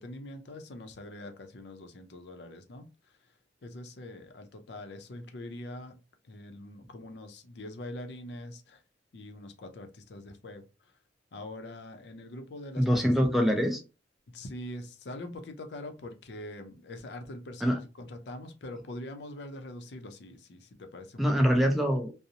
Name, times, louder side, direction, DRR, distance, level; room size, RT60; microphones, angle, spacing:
voice 1, 0.0-3.3 3.6-6.0 6.2-8.8 9.1-10.9 11.3-13.0 14.3-21.4, left 1 dB, 65° left, 0.5 m, -43 dB
voice 2, 12.8-13.8 17.6-17.8 21.2-22.1, equal, ahead, 0.3 m, -24 dB
2.8 x 2.0 x 2.5 m
head